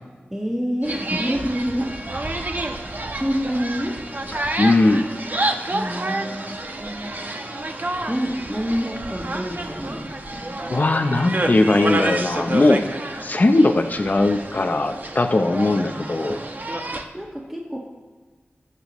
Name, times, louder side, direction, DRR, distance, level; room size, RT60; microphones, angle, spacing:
voice 1, 0.3-2.7 3.2-4.2 5.7-7.3 8.1-10.6 15.7-16.7 17.1-17.8, equal, 10° right, -3 dB, 1.4 m, -28 dB
sound 1, 0.8-17.0, right 2 dB, 50° right, 1.0 m, -29 dB
voice 2, 4.6-5.1 10.7-13.0 13.2-16.4, left 2 dB, 45° left, 6 dB, 0.6 m, -19 dB
19.0 x 6.8 x 3.1 m, 1.4 s
wide cardioid pair, 65°, 4 cm